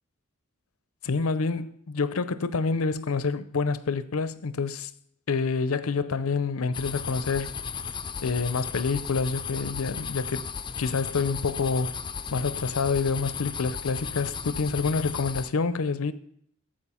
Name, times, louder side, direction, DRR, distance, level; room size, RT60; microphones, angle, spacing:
voice 1, 1.0-4.9 5.3-7.5 8.2-10.5 10.8-12.0 12.3-16.1, left 4 dB, 80° left, 0.6 m, -27 dB
sound 1, 6.7-15.5, left 6 dB, 20° left, 0.5 m, -35 dB
13.5 x 7.6 x 5.7 m
head